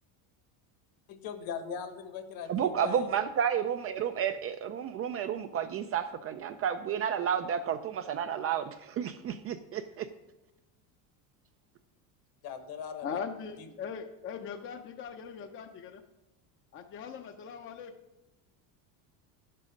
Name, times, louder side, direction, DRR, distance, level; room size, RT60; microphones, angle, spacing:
voice 1, 1.1-3.2 12.4-13.1 13.6-13.7, left 7 dB, 55° left, 10 dB, 1.3 m, -40 dB
voice 2, 2.5-10.1, right 8 dB, 35° right, 9 dB, 0.4 m, -31 dB
voice 3, 13.0-16.0 16.7-17.9, left 6 dB, 30° left, 6 dB, 0.6 m, -40 dB
9.6 x 7.6 x 5.1 m, 0.96 s
cardioid pair, 140°, 44 cm